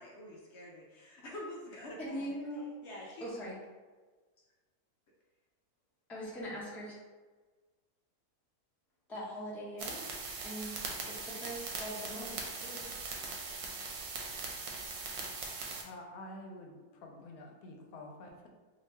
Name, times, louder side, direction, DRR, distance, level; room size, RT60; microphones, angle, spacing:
voice 1, 0.0-2.4 2.8-3.3, left 1 dB, 65° left, -3 dB, 0.7 m, -47 dB
voice 2, 2.0-2.6 3.2-3.6 6.1-7.0 9.1-10.1 10.4-12.9, equal, ahead, -8 dB, 0.5 m, -42 dB
sound 1, 9.8-15.8, right 4 dB, 85° right, 1.2 m, -40 dB
voice 3, 15.8-18.5, left 1 dB, 85° left, 1 dB, 1.1 m, -48 dB
2.8 x 2.7 x 3.3 m, 1.3 s
omnidirectional pair, 1.6 m